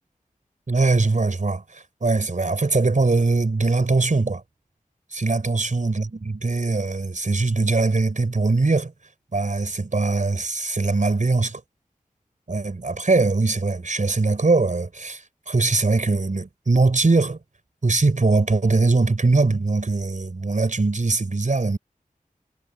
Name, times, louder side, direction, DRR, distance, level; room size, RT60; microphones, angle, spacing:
voice 1, 0.7-4.4 5.1-8.9 9.3-11.6 12.5-17.4 17.8-21.8, right 3 dB, 60° right, 5.6 m, -21 dB
wide cardioid pair, 65°, 15 cm